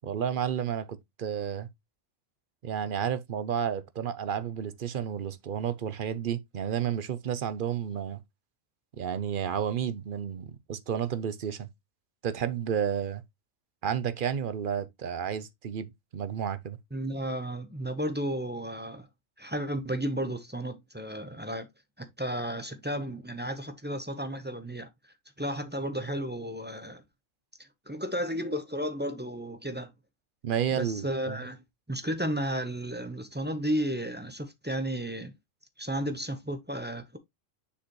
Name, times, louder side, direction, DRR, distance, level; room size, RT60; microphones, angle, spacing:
voice 1, 0.0-1.7 2.6-8.2 9.0-11.7 12.2-13.2 13.8-16.8 30.4-31.4, right 8 dB, 50° right, 0.7 m, -31 dB
voice 2, 16.9-19.1 19.4-21.7 22.0-24.9 25.4-27.0 27.6-29.9 30.7-31.6 31.9-35.3 35.8-37.2, equal, 10° right, 0.8 m, -33 dB
6.8 x 4.9 x 3.1 m
omnidirectional pair, 1.4 m